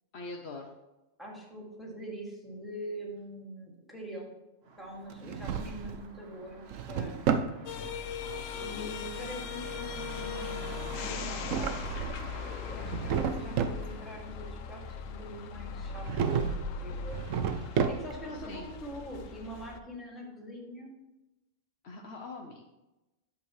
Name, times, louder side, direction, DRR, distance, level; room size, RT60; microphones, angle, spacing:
voice 1, 0.1-0.7 8.2-8.9 18.3-18.7 21.8-22.7, left 3 dB, 60° left, 3 dB, 1.0 m, -44 dB
voice 2, 1.2-4.3 4.8-7.5 8.6-12.1 12.4-17.2 17.9-20.9, equal, ahead, -3 dB, 2.2 m, -44 dB
sound 1, 4.6-14.9, right 3 dB, 55° right, 1.2 m, -47 dB
Drawer open or close, 5.1-6.1 6.5-7.6 11.2-12.3 12.7-13.8 16.0-16.7 17.1-18.3, right 7 dB, 85° right, 1.0 m, -31 dB
sound 2, 7.7-19.8, left 6 dB, 85° left, 1.0 m, -39 dB
10.5 x 7.1 x 3.2 m, 1.0 s
omnidirectional pair, 1.3 m